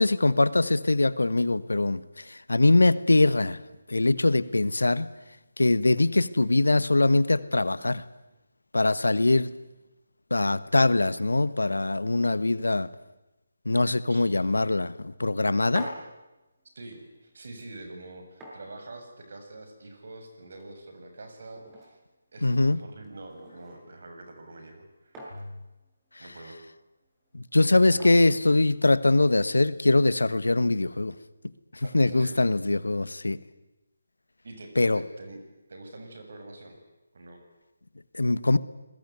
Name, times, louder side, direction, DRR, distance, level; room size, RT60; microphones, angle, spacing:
voice 1, 0.0-2.0 2.3-3.6 3.9-5.1 5.6-8.0 8.7-9.5 10.3-12.9 13.6-14.9 15.2-15.9 22.4-22.8 27.3-31.1 31.9-33.4 34.8-35.0 38.1-38.6, left 2 dB, 75° left, 16 dB, 1.4 m, -22 dB
sound 1, 15.7-29.4, equal, 15° right, 6.8 m, -49 dB
voice 2, 16.7-22.0 22.3-25.2 26.2-26.6 27.9-28.2 31.8-32.4 34.4-35.4 35.7-36.8 37.1-37.4, right 2 dB, 55° right, 6 dB, 7.5 m, -45 dB
28.0 x 21.0 x 9.5 m, 1.0 s
figure-of-eight pair, 150°, 0 cm